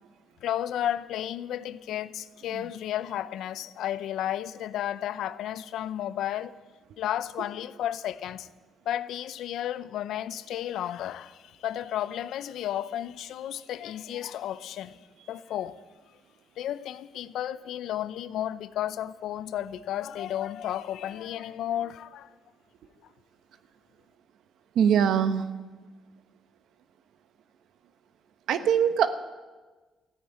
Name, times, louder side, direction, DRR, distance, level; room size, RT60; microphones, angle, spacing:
voice 1, 0.4-6.5 7.0-8.5 8.9-15.0 15.3-15.8 16.6-22.3, left 11 dB, 80° left, 0.6 m, -33 dB
voice 2, 24.7-25.5 28.5-29.1, right 8 dB, 75° right, 1.0 m, -22 dB
14.5 x 9.5 x 8.7 m
cardioid pair, 90°, 0 cm